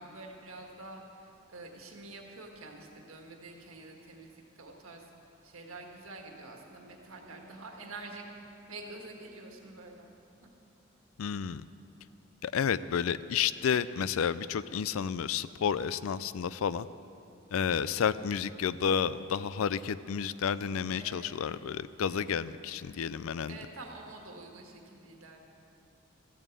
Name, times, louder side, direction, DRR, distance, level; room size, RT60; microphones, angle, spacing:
voice 1, 0.0-5.0 5.4-8.2 8.7-10.1 10.4-10.5 21.0-21.4 22.1-22.3 23.5-25.4, right 2 dB, 90° right, 2 dB, 1.6 m, -47 dB
voice 2, 11.2-11.6 12.4-16.9 17.5-23.6, left 7 dB, 85° left, 16 dB, 0.4 m, -31 dB
14.0 x 7.3 x 8.2 m, 2.7 s
head